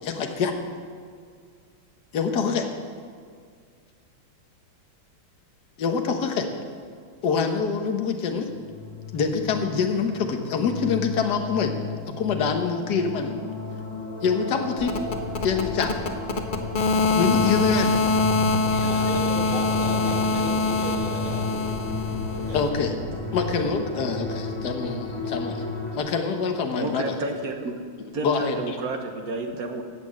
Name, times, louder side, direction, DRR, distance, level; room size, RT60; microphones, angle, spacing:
voice 1, 0.0-0.5 2.1-2.7 5.8-6.5 7.2-8.5 9.1-11.7 12.1-13.3 14.2-15.0 15.4-15.9 17.2-17.9 22.5-25.6 25.9-27.1 28.2-28.5, left 5 dB, 55° left, 4 dB, 1.6 m, -25 dB
sound 1, 8.4-26.0, left 4 dB, 15° left, 2.8 m, -33 dB
sound 2, 14.8-22.7, left 3 dB, 70° left, 0.4 m, -25 dB
voice 2, 18.7-21.7 22.2-22.8, right 1 dB, 70° right, -3 dB, 4.2 m, -35 dB
voice 3, 26.7-27.7 28.1-29.8, right 2 dB, 50° right, 4 dB, 1.5 m, -30 dB
15.5 x 6.0 x 8.7 m, 2.1 s
omnidirectional pair, 2.3 m